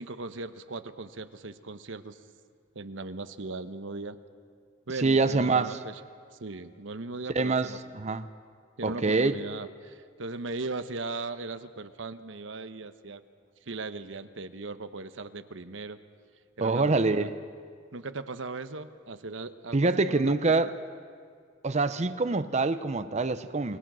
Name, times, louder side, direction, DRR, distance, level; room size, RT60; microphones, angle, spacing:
voice 1, 0.0-2.2 2.7-4.2 4.9-6.0 6.4-7.8 8.8-13.2 13.7-16.0 16.6-17.3 17.9-20.4, right 3 dB, 75° right, 11 dB, 1.0 m, -38 dB
voice 2, 5.0-5.8 7.3-7.7 7.9-8.2 8.8-9.3 16.6-17.3 19.7-20.7 21.6-23.8, right 3 dB, 35° right, 12 dB, 0.7 m, -25 dB
28.5 x 20.5 x 6.2 m, 2.2 s
head